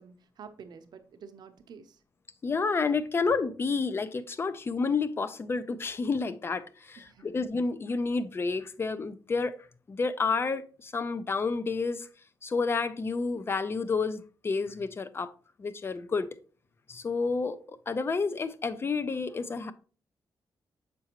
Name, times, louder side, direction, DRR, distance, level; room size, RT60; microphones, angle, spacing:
voice 1, 0.0-2.0 7.0-7.4, right 6 dB, 70° right, 0.7 m, -49 dB
voice 2, 2.4-9.6 9.9-12.1 12.4-15.3 15.6-16.3 16.9-19.7, left 4 dB, 30° left, 0.5 m, -30 dB
6.8 x 4.7 x 2.9 m
wide cardioid pair, 125°, 8 cm